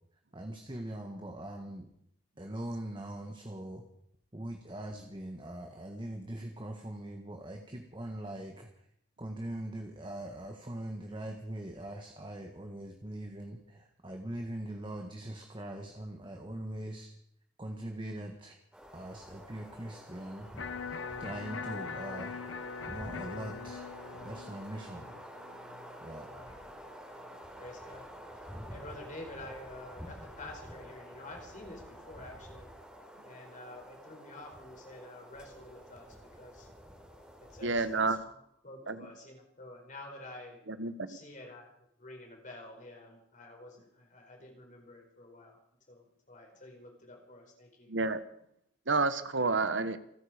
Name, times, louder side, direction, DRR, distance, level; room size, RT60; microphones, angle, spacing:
voice 1, 0.3-1.9 2.4-3.8 4.3-8.7 9.2-17.1 17.6-18.6 18.9-20.5 21.2-22.4 22.9-23.9 24.2-25.1 26.0-26.6, right 1 dB, 25° right, 3 dB, 1.6 m, -41 dB
sound 1, 18.7-38.2, equal, 5° right, 3.5 m, -49 dB
Electric guitar, 20.6-26.6, left 5 dB, 85° left, 0.9 m, -42 dB
voice 2, 27.6-28.1 28.7-32.7 33.2-36.7 37.4-38.4 38.6-40.6 41.1-45.6 45.9-47.9, left 2 dB, 40° left, 2 dB, 4.5 m, -49 dB
voice 3, 37.6-38.2 38.9-39.0 40.7-41.2 47.9-48.2 48.9-50.0, right 3 dB, 70° right, 12 dB, 1.2 m, -30 dB
28.0 x 9.8 x 5.1 m, 0.72 s
head